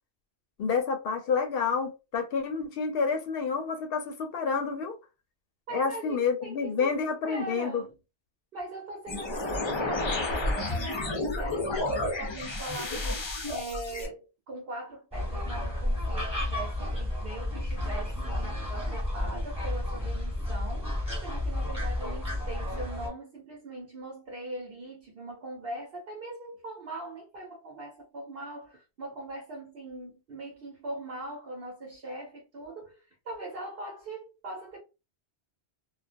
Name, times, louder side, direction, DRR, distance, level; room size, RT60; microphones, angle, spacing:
voice 1, 0.6-4.9 5.7-7.8, left 5 dB, 65° left, 0.7 m, -29 dB
voice 2, 5.7-6.9 7.3-7.9 8.5-34.8, right 2 dB, 60° right, 1.0 m, -41 dB
sound 1, 9.1-14.1, left 2 dB, 35° left, 0.5 m, -31 dB
sound 2, 15.1-23.1, left 1 dB, 5° right, 1.1 m, -32 dB
2.3 x 2.1 x 2.5 m
omnidirectional pair, 1.1 m